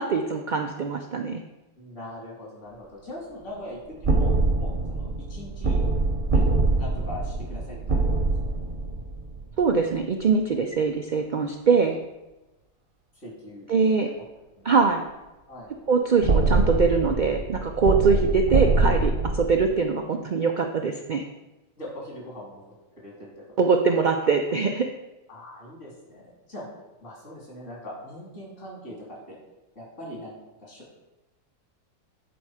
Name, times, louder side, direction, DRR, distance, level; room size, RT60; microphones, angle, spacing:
voice 1, 0.0-1.4 9.6-12.0 13.7-14.1 14.6-15.0 15.9-21.2 23.6-24.9, right 5 dB, 85° right, 4 dB, 0.4 m, -23 dB
voice 2, 1.8-4.3 4.6-5.8 6.3-8.5 13.1-14.2 14.5-14.6 15.5-15.7 17.8-18.0 21.8-22.7 23.0-23.4 23.9-24.0 25.3-26.6 27.0-29.4 29.7-31.0, left 1 dB, 55° left, -3 dB, 3.3 m, -41 dB
sound 1, 4.0-9.7 16.2-19.6, right 3 dB, 40° right, 0.8 m, -24 dB
10.0 x 4.3 x 4.9 m, 1.0 s
omnidirectional pair, 1.5 m